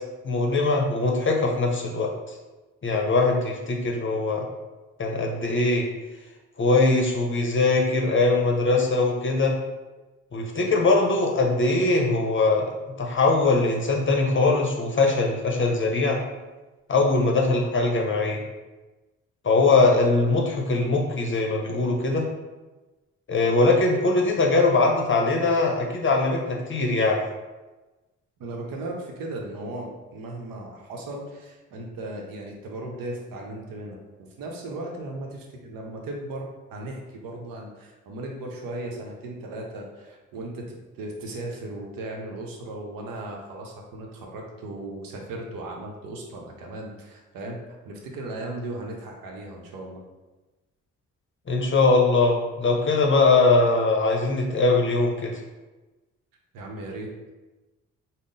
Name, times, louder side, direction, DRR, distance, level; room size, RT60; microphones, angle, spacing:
voice 1, 0.2-2.1 2.8-4.5 5.0-5.9 6.6-9.5 10.3-12.7 13.0-16.2 16.9-18.4 19.4-22.3 23.3-27.2 51.5-55.4, left 3 dB, 35° left, 0 dB, 0.7 m, -21 dB
voice 2, 28.4-47.6 47.8-50.0 56.5-57.3, right 2 dB, 75° right, 0 dB, 0.8 m, -36 dB
3.6 x 2.0 x 3.8 m, 1.1 s
hypercardioid pair, 45°, 35 cm